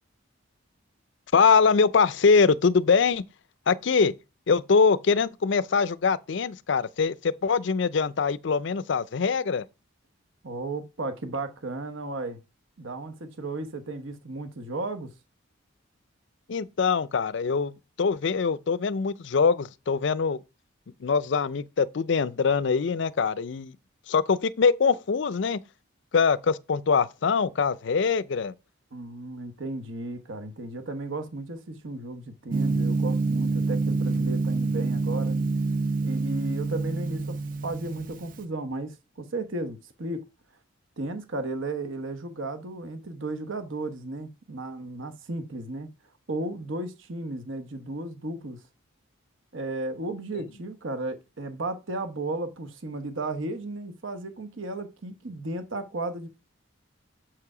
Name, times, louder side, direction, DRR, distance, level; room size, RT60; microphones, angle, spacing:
voice 1, 1.3-3.2 3.7-4.1 4.5-9.6 16.5-17.7 18.0-20.4 21.0-23.7 24.1-25.6 26.1-28.5, left 5 dB, 60° left, 0.4 m, -23 dB
voice 2, 10.4-12.4 12.8-15.1 28.9-35.5 36.0-40.2 41.0-45.9 46.3-48.6 49.5-56.3, right 2 dB, 70° right, 1.0 m, -34 dB
Gong, 32.5-38.4, right 3 dB, 40° right, 0.7 m, -27 dB
7.4 x 4.7 x 4.9 m
head